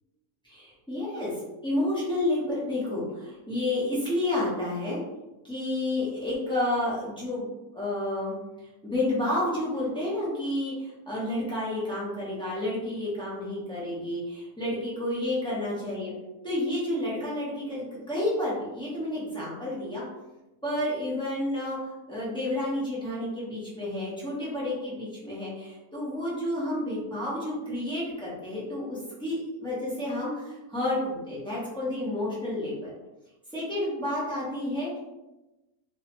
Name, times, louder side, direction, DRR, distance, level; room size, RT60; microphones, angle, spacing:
voice 1, 0.4-5.0 5.4-7.4 7.7-8.3 8.8-16.1 16.4-20.0 20.6-32.9 33.5-35.0, left 1 dB, 5° left, -7 dB, 0.4 m, -30 dB
3.1 x 2.1 x 2.8 m, 1.0 s
omnidirectional pair, 1.6 m